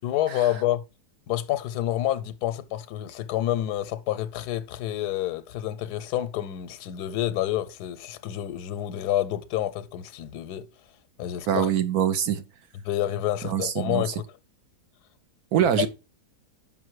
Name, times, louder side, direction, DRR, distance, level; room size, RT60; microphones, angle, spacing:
voice 1, 0.0-0.8 1.3-10.7 11.2-11.7 12.8-14.2 15.6-15.7, left 13 dB, 85° left, 1.2 m, -28 dB
voice 2, 11.5-12.4 13.4-14.1 15.5-15.9, right 9 dB, 70° right, 1.3 m, -24 dB
5.8 x 5.2 x 4.6 m
omnidirectional pair, 1.7 m